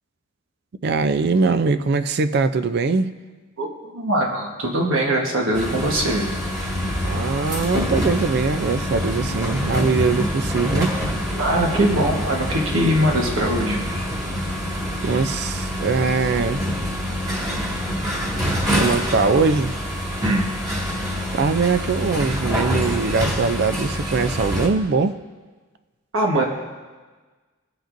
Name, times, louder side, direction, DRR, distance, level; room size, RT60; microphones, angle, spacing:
voice 1, 0.8-3.1 7.0-11.0 15.0-16.6 18.8-19.7 21.3-25.2, right 4 dB, 50° right, 11 dB, 0.4 m, -21 dB
voice 2, 3.9-6.2 11.4-13.9 15.0-15.2 18.3-18.4 20.2-20.5 26.1-26.5, right 1 dB, 80° right, -1 dB, 1.4 m, -21 dB
sound 1, 5.5-24.7, equal, 20° right, 1.9 m, -26 dB
19.0 x 7.7 x 2.6 m, 1.3 s
head